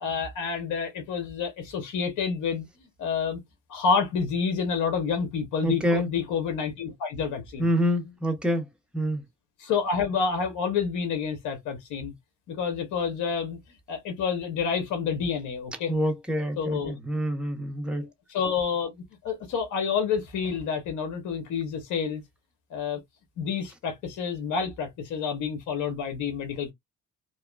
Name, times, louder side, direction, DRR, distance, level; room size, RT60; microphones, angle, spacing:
voice 1, 0.0-2.7 3.0-3.4 3.7-7.7 9.6-12.1 12.5-13.6 13.9-15.9 16.6-16.9 17.9-18.0 18.3-22.2 22.7-23.0 23.4-26.7, left 6 dB, 85° left, 1.0 m, -28 dB
voice 2, 5.6-6.1 7.6-8.7 8.9-9.2 15.9-18.1, equal, 5° right, 0.8 m, -26 dB
2.9 x 2.2 x 2.3 m
cardioid pair, 90°, 30 cm